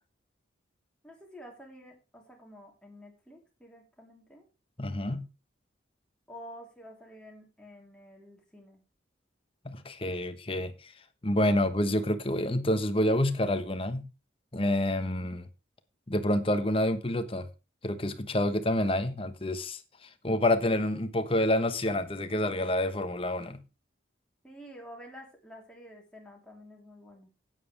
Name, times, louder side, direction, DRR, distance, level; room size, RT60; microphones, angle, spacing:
voice 1, 1.0-4.4 6.3-8.8 24.4-27.3, equal, 5° left, 3.4 m, -49 dB
voice 2, 4.8-5.3 9.6-10.9 11.2-14.1 14.5-15.4 16.1-17.5 17.8-23.6, left 1 dB, 30° left, 1.1 m, -28 dB
12.5 x 9.3 x 3.4 m
head